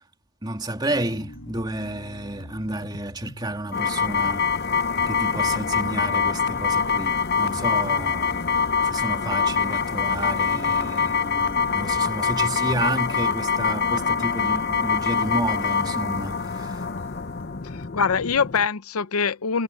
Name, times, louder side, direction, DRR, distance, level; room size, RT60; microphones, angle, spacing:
voice 1, 0.4-8.4 8.8-16.8, right 1 dB, 20° right, 2.9 m, -31 dB
sound 1, 0.8-17.9, equal, 65° left, 7.2 m, -43 dB
sound 2, 3.7-18.7, left 5 dB, 45° left, 0.7 m, -24 dB
voice 2, 17.6-19.6, left 5 dB, 90° left, 0.7 m, -24 dB
head